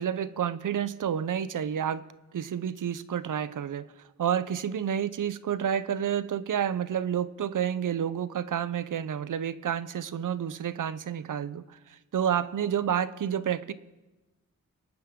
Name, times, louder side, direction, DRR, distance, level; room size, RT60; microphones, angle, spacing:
voice 1, 0.0-2.0 2.3-3.9 4.2-13.7, right 9 dB, 70° right, 15 dB, 0.7 m, -29 dB
24.5 x 9.4 x 3.7 m, 1.1 s
cardioid pair, 45°, 32 cm